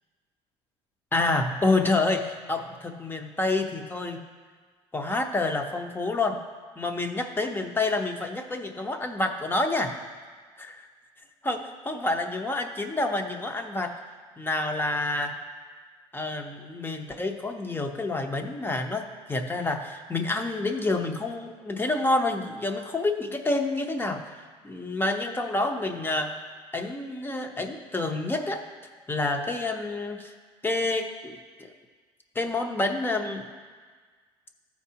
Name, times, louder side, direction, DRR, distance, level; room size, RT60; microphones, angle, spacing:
voice 1, 1.1-4.2 4.9-6.4 6.8-9.9 10.6-10.9 11.4-14.0 14.4-15.4 16.1-26.3 26.7-28.6 29.1-30.3 30.6-31.7 32.3-33.4, left 2 dB, 15° left, 5 dB, 0.9 m, -28 dB
13.5 x 4.7 x 2.9 m, 1.5 s
supercardioid pair, 85°, 12 cm